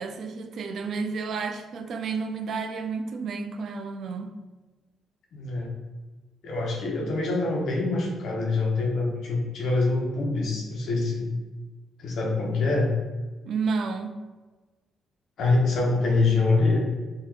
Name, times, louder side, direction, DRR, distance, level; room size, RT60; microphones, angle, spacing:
voice 1, 0.0-4.4 13.4-14.2, right 4 dB, 65° right, 0.3 m, -31 dB
voice 2, 5.3-5.7 6.4-11.3 12.0-12.9 15.4-16.8, left 3 dB, 70° left, 0.8 m, -25 dB
3.8 x 2.8 x 2.4 m
cardioid pair, 90°, 0 cm